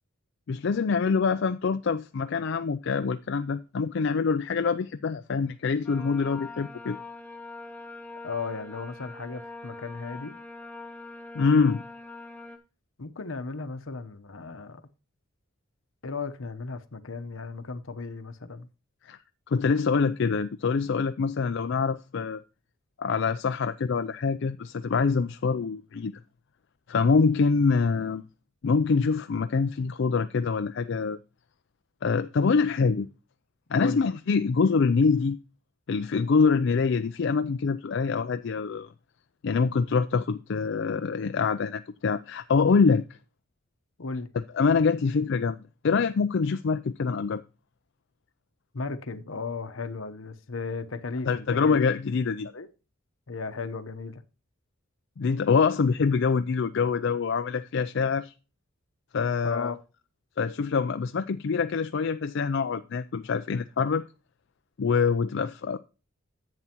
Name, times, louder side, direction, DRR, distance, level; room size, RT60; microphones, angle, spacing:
voice 1, 0.5-7.0 11.3-11.8 19.1-19.2 19.5-22.4 23.0-26.2 26.9-28.2 28.6-31.2 32.0-33.1 33.7-35.4 35.9-38.9 39.4-43.0 44.5-47.4 51.3-52.5 55.2-58.3 59.1-59.7 60.4-64.0 64.8-65.8, left 5 dB, 60° left, 0.4 m, -25 dB
sound 1, 5.8-12.6, left 3 dB, 10° left, 1.0 m, -43 dB
voice 2, 8.2-10.4 13.0-14.8 16.0-18.7 33.8-34.0 44.0-44.3 48.7-51.8 52.4-52.7 53.3-54.2 59.4-59.8, left 4 dB, 75° left, 0.9 m, -35 dB
10.5 x 8.2 x 2.9 m
head